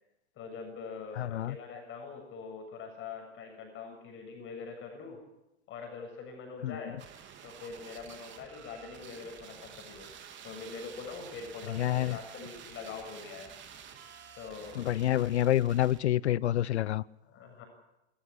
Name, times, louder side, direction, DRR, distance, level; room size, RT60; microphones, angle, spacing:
voice 1, 0.4-5.2 5.7-7.0 7.4-10.1 10.4-13.5 14.4-14.8 17.2-17.6, left 5 dB, 35° left, 7.2 m, -44 dB
voice 2, 1.2-1.6 6.6-6.8 11.7-12.2 14.7-17.0, left 12 dB, 75° left, 0.7 m, -28 dB
sound 1, 7.0-16.0, right 8 dB, 35° right, 3.6 m, -50 dB
28.0 x 14.0 x 9.9 m
hypercardioid pair, 100°, 34 cm